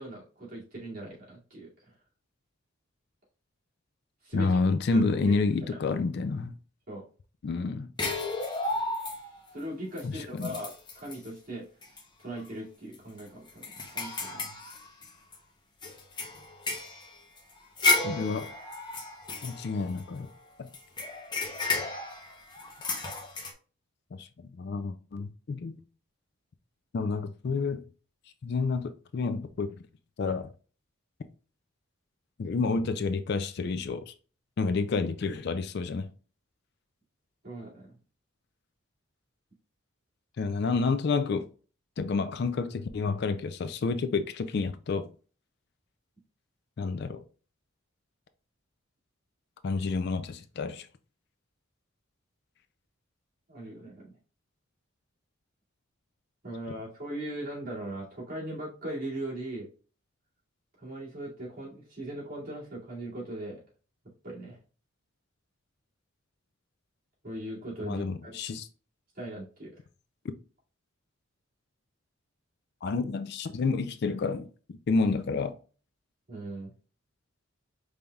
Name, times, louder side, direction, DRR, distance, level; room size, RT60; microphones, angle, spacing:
voice 1, 0.0-1.7 4.2-4.6 4.9-5.8 6.9-7.0 9.5-11.7 12.2-14.6 37.4-38.0 53.5-54.1 56.4-59.7 60.8-63.6 64.2-64.6 67.2-68.4 69.1-69.7 76.3-76.7, right 1 dB, 40° right, 2.2 m, -39 dB
voice 2, 4.3-6.5 7.4-7.9 10.0-10.5 18.0-18.5 19.4-20.3 20.6-20.7 24.1-25.8 26.9-27.8 28.4-29.7 30.2-30.5 32.4-34.1 34.6-36.1 40.4-41.5 42.0-45.1 46.8-47.2 49.6-50.9 67.8-68.7 72.8-75.5, left 4 dB, 50° left, 0.3 m, -29 dB
sound 1, 8.0-9.5 10.0-10.1 10.4-11.3 11.8-12.0 12.4-12.5 12.9-15.4 15.8-20.3 20.7-23.5, left 2 dB, 20° left, 0.7 m, -32 dB
5.3 x 3.3 x 2.3 m
head